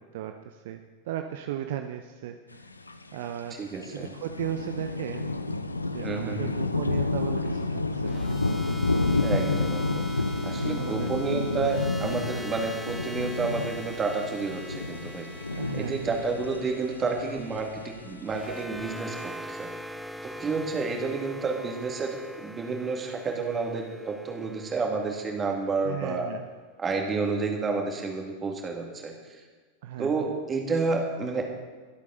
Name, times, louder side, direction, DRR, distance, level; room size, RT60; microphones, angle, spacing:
voice 1, 0.1-0.8 1.1-2.7 3.1-3.6 3.9-5.3 5.9-8.3 10.5-11.1 15.5-16.2 25.8-26.5 29.8-30.4, right 11 dB, 55° right, 7 dB, 0.6 m, -36 dB
sound 1, 2.5-3.2 3.5-3.6 3.7-18.5, left 3 dB, 80° left, 0.6 m, -30 dB
voice 2, 3.5-4.1 6.0-6.5 9.2-10.0 10.4-15.3 15.7-19.7 20.2-26.3 26.8-29.4 30.0-31.5, right 4 dB, 20° right, 2 dB, 2.2 m, -30 dB
sound 2, 8.1-26.2, equal, ahead, 0.6 m, -43 dB
23.0 x 8.2 x 4.0 m, 1.5 s
figure-of-eight pair, 90°, 0 cm